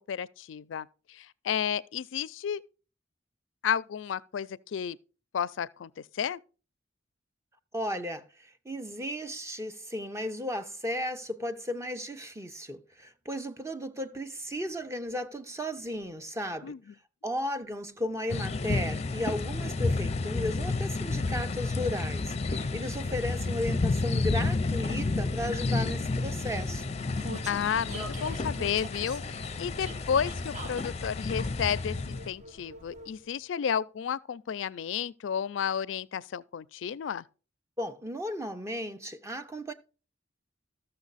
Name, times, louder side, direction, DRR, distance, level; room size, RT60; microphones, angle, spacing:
voice 1, 0.1-2.6 3.6-5.0 5.3-6.4 16.6-16.8 27.5-37.2, left 8 dB, 85° left, 0.4 m, -32 dB
voice 2, 7.7-16.7 17.2-27.0 37.8-39.7, equal, 15° right, 0.7 m, -35 dB
sound 1, 18.3-32.3, left 3 dB, 35° left, 0.5 m, -31 dB
Vehicle, 22.6-33.4, right 1 dB, 40° right, 1.2 m, -46 dB
13.5 x 6.7 x 4.0 m
head